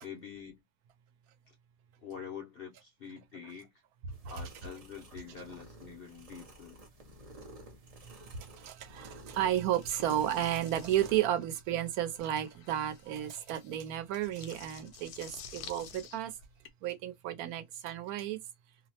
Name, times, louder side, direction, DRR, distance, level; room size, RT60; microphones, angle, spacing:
voice 1, 0.0-0.6 1.5-1.6 2.0-3.7 4.3-6.8 13.1-13.3, left 7 dB, 55° left, 0.7 m, -46 dB
sound 1, 4.1-11.2, right 1 dB, 60° right, 0.4 m, -52 dB
voice 2, 8.6-16.3 16.8-18.4, right 11 dB, 75° right, 1.0 m, -32 dB
sound 2, 9.8-16.7, left 7 dB, 80° left, 1.1 m, -51 dB
2.7 x 2.0 x 2.8 m
omnidirectional pair, 1.6 m